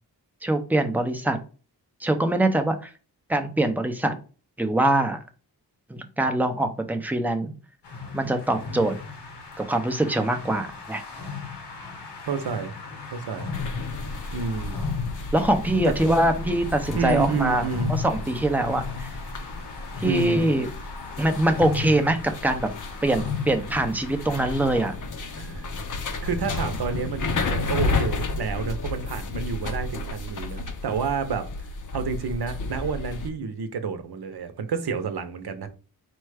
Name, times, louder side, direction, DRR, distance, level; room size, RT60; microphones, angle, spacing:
voice 1, 0.4-1.4 2.0-2.9 3.3-4.1 4.6-5.2 5.9-7.5 8.1-8.9 9.6-11.0 15.3-19.2 20.0-20.7 21.2-22.7 23.0-25.0, right 1 dB, 5° right, 0.5 m, -23 dB
sound 1, 7.8-24.9, left 4 dB, 85° left, 1.1 m, -36 dB
voice 2, 12.2-12.7 13.1-13.5 14.3-14.9 15.8-16.2 16.9-17.9 20.0-20.5 25.3-25.7 26.2-31.5 31.9-35.7, right 5 dB, 70° right, 0.8 m, -29 dB
sound 2, 13.5-33.3, left 3 dB, 50° left, 0.6 m, -32 dB
4.4 x 2.2 x 4.7 m
wide cardioid pair, 115°, 40 cm